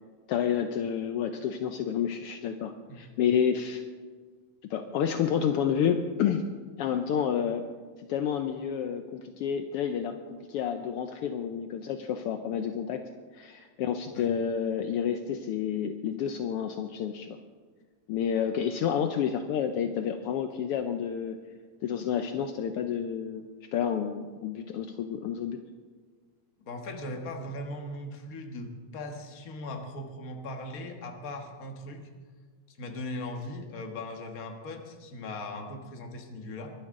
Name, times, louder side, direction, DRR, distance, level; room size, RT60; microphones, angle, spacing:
voice 1, 0.3-3.8 4.6-6.4 6.8-7.6 8.1-13.0 13.3-17.4 18.1-21.4 21.8-23.4 23.7-25.6, left 8 dB, 80° left, 7 dB, 1.3 m, -29 dB
voice 2, 26.6-32.0 32.7-36.7, left 1 dB, 40° left, 4 dB, 1.4 m, -39 dB
23.0 x 12.0 x 3.7 m, 1.5 s
omnidirectional pair, 3.3 m